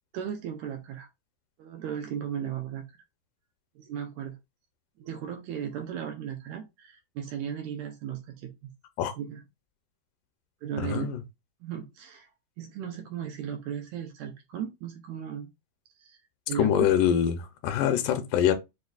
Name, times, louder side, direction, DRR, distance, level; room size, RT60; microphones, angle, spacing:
voice 1, 0.1-1.1 1.6-3.0 3.7-4.4 5.0-8.7 9.1-9.4 10.6-11.1 11.6-12.3 12.6-15.5 16.0-16.2 16.5-16.9, right 8 dB, 80° right, 1.7 m, -36 dB
voice 2, 10.8-11.2 16.6-18.5, left 9 dB, 80° left, 2.0 m, -24 dB
6.4 x 2.6 x 2.3 m
omnidirectional pair, 3.9 m